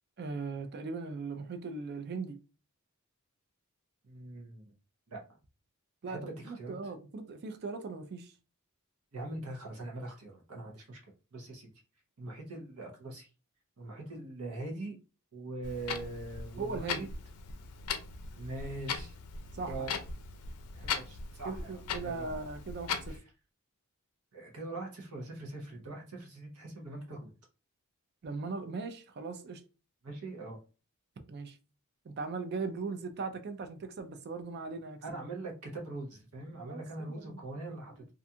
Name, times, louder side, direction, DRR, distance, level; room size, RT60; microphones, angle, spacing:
voice 1, 0.2-2.4 6.0-8.3 16.6-17.1 19.5-19.9 21.4-23.2 28.2-29.6 31.3-31.6 32.0-35.0 36.6-37.4 37.7-37.8, right 4 dB, 50° right, 0.4 m, -39 dB
voice 2, 4.0-4.7 5.1-5.2 6.1-6.7 9.1-11.0 11.3-11.7 12.2-13.3 13.8-15.0 15.3-17.1 18.3-19.2 19.7-19.9 20.7-22.3 23.1-23.2 24.3-27.3 30.0-30.6 35.0-38.1, right 2 dB, 85° right, 0.8 m, -42 dB
Clock, 15.6-23.2, left 5 dB, 85° left, 0.4 m, -39 dB
2.5 x 2.3 x 2.7 m
head